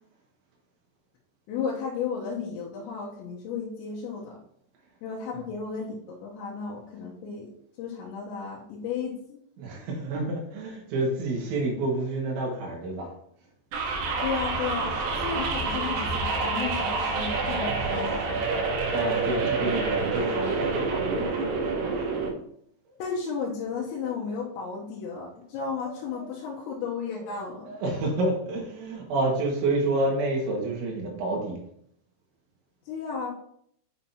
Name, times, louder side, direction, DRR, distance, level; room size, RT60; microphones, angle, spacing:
voice 1, 1.5-4.4 5.0-7.5 7.8-9.4 14.2-18.4 23.0-27.7 32.9-33.3, left 5 dB, 75° left, -5 dB, 3.0 m, -33 dB
voice 2, 9.6-13.1 18.9-21.3 26.1-26.3 27.2-27.3 27.6-31.6, right 2 dB, 70° right, -1 dB, 3.9 m, -29 dB
sound 1, 13.7-22.3, right 3 dB, 90° right, 4.0 m, -27 dB
8.6 x 5.8 x 2.8 m, 0.69 s
omnidirectional pair, 5.7 m